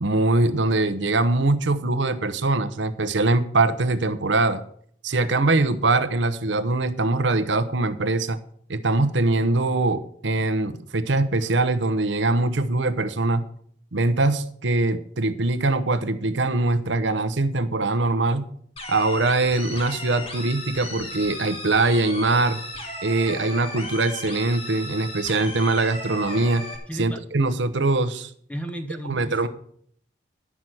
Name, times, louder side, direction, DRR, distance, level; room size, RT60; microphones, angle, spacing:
voice 1, 0.0-4.6 5.0-8.4 8.7-13.4 13.9-18.5 18.9-22.6 23.0-26.6 27.0-28.3 29.0-29.5, right 2 dB, 80° right, 11 dB, 0.9 m, -22 dB
sound 1, 18.8-26.8, left 1 dB, 30° left, 2.5 m, -35 dB
voice 2, 26.9-27.2 28.5-29.5, right 1 dB, 5° left, 7 dB, 0.9 m, -33 dB
11.0 x 5.9 x 7.7 m, 0.63 s
head